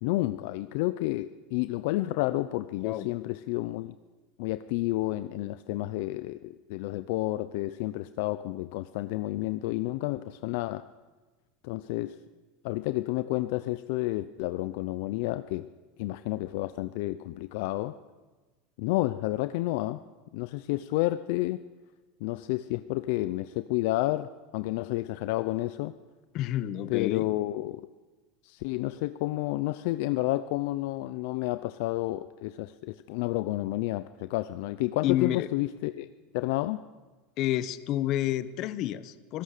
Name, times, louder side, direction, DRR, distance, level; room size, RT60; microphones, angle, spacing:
voice 1, 0.0-3.9 4.4-10.9 11.6-12.2 12.6-15.7 16.0-18.0 18.8-20.0 20.3-21.6 22.2-25.9 26.9-27.9 28.4-36.1 36.3-36.8, left 18 dB, 65° left, 13 dB, 0.6 m, -30 dB
voice 2, 26.3-27.3 35.0-35.5 37.4-39.4, left 13 dB, 45° left, 15 dB, 1.0 m, -29 dB
24.5 x 17.0 x 6.7 m, 1.3 s
supercardioid pair, 150°, 0 cm